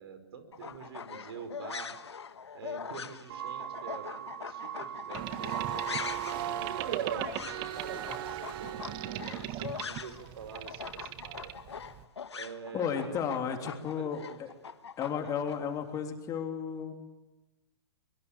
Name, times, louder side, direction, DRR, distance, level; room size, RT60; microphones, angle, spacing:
voice 1, 0.0-1.9 2.5-11.6 12.3-13.7 14.0-14.4, right 6 dB, 70° right, 9 dB, 5.0 m, -46 dB
sound 1, 0.5-10.3 10.5-15.6, left 6 dB, 85° left, 1.4 m, -42 dB
sound 2, 3.3-9.3, right 10 dB, 55° right, 2.3 m, -37 dB
Boat Water vehicle, 5.1-12.0, right 13 dB, 35° right, 1.5 m, -41 dB
voice 2, 12.7-14.5 15.0-16.9, left 7 dB, 25° left, 4 dB, 3.2 m, -33 dB
24.5 x 23.5 x 8.7 m, 1.1 s
hypercardioid pair, 125°, 14 cm